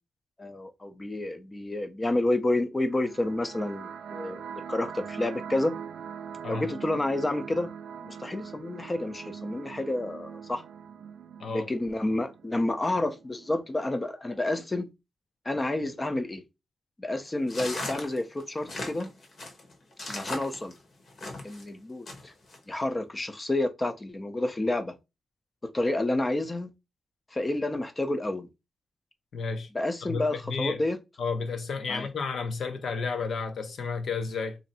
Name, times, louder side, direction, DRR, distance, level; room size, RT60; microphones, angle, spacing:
voice 1, 0.4-5.7 6.5-7.7 8.0-10.6 11.5-14.9 15.5-16.4 17.0-19.1 20.1-20.7 21.4-22.3 22.7-24.9 25.6-26.7 27.3-28.5 29.7-31.0 31.9-32.1, left 2 dB, 20° left, 0.5 m, -29 dB
sound 1, 2.8-13.8, right 7 dB, 70° right, 0.4 m, -42 dB
sound 2, 17.5-21.6 22.1-22.6, left 2 dB, 45° left, 1.1 m, -37 dB
voice 2, 29.3-29.7 30.1-30.8 31.2-34.6, left 4 dB, 65° left, 0.7 m, -32 dB
3.1 x 2.7 x 4.0 m
wide cardioid pair, 145°, 0 cm